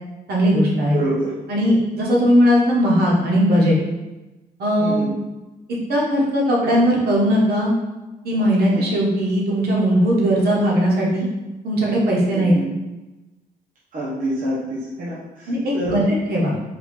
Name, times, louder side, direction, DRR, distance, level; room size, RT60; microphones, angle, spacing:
voice 1, 0.3-1.0 1.5-3.8 4.6-5.1 5.7-7.7 8.2-11.2 11.6-12.5 15.5-16.6, equal, 80° right, -3 dB, 1.2 m, -18 dB
voice 2, 0.9-1.3 4.8-5.1 8.7-8.8 12.3-12.7 13.9-16.0, right 1 dB, 55° right, -8 dB, 1.1 m, -27 dB
4.4 x 2.7 x 3.8 m, 1.1 s
cardioid pair, 90°, 16 cm